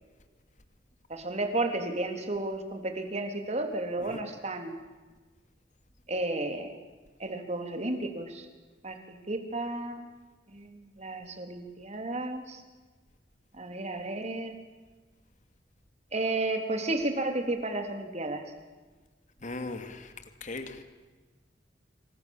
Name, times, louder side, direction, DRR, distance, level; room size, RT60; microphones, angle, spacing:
voice 1, 1.1-4.8 6.1-6.7 7.2-8.5 8.8-9.0 9.3-10.0 10.5-12.6 13.5-14.6 16.1-18.4, right 2 dB, 40° right, 5 dB, 3.6 m, -32 dB
voice 2, 19.4-20.1 20.4-20.8, left 2 dB, 45° left, 8 dB, 2.6 m, -38 dB
27.5 x 25.0 x 7.4 m, 1.3 s
head